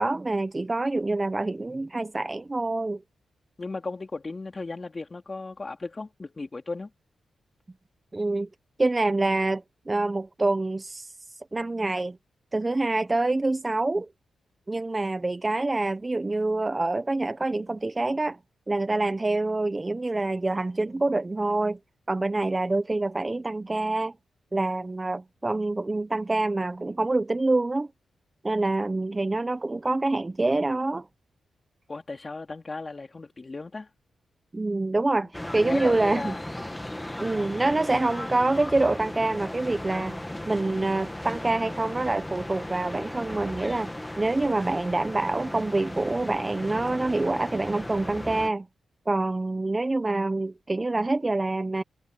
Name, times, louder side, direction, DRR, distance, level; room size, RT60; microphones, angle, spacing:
voice 1, 0.0-3.0 8.1-8.5 8.8-11.1 11.5-12.2 12.5-14.1 14.7-18.4 18.7-21.8 22.1-24.1 24.5-27.9 28.4-31.1 34.5-36.3 37.2-43.9 44.2-48.7 49.1-51.8, right 2 dB, 20° right, 0.7 m, -26 dB
voice 2, 3.6-6.9 31.9-33.9 35.2-35.3 35.5-36.4, left 3 dB, 30° left, 3.3 m, -36 dB
sound 1, 35.3-48.5, left 1 dB, 10° left, 1.6 m, -36 dB
wide cardioid pair, 110°, 0 cm